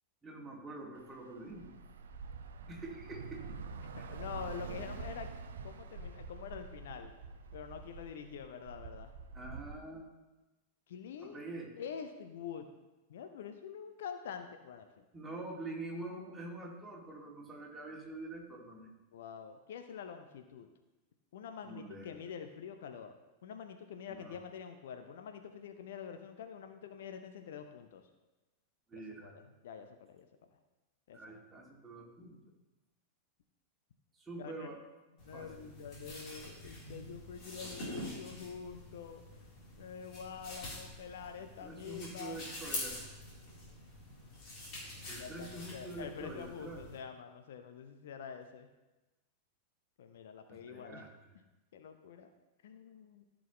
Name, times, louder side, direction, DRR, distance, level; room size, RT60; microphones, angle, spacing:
voice 1, 0.2-1.7 2.7-3.4 4.0-4.2 9.3-10.1 11.2-11.7 15.1-18.9 21.6-22.2 24.1-24.3 28.9-29.3 31.1-32.4 34.1-34.8 35.3-35.5 37.9-38.3 41.6-43.0 45.1-46.8 50.5-51.1, right 2 dB, 15° right, -2 dB, 2.4 m, -46 dB
Bus / Traffic noise roadway noise, 1.0-9.7, right 4 dB, 65° right, 0.6 m, -46 dB
voice 2, 3.9-5.3 5.6-7.1 7.5-9.1 10.9-11.4 11.8-12.7 13.1-15.0 19.1-20.7 21.3-23.2 23.4-28.0 28.9-30.3 31.1-31.4 34.4-34.7 35.2-39.2 39.8-42.5 45.2-48.7 50.0-51.0 51.7-52.3 52.6-53.3, left 7 dB, 60° left, 7 dB, 0.7 m, -46 dB
sound 1, 35.2-47.0, left 1 dB, 35° left, 3.6 m, -46 dB
14.5 x 6.2 x 3.1 m, 1.1 s
figure-of-eight pair, 90°, 0 cm